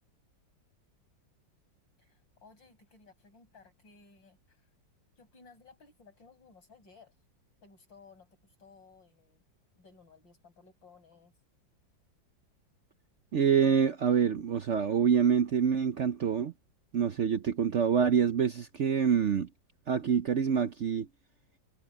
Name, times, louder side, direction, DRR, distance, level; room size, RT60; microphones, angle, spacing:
voice 1, 2.0-4.7 5.2-7.2 7.6-9.4 9.8-11.3, left 4 dB, 80° left, 8.6 m, -58 dB
voice 2, 13.3-16.5 16.9-19.5 19.9-21.1, right 7 dB, 60° right, 0.7 m, -26 dB
omnidirectional pair, 2.0 m